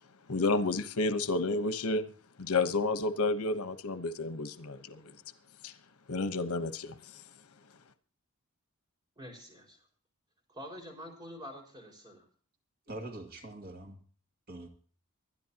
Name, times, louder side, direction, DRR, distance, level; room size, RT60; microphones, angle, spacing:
voice 1, 0.3-2.1 2.4-5.1 5.6-5.7 6.1-7.2, left 3 dB, 90° left, 11 dB, 1.1 m, -31 dB
voice 2, 9.2-9.8 10.5-12.2, equal, 20° right, 1 dB, 5.2 m, -46 dB
voice 3, 12.9-14.0 14.5-14.7, right 2 dB, 45° right, 3 dB, 2.1 m, -43 dB
24.5 x 10.0 x 2.9 m, 0.40 s
head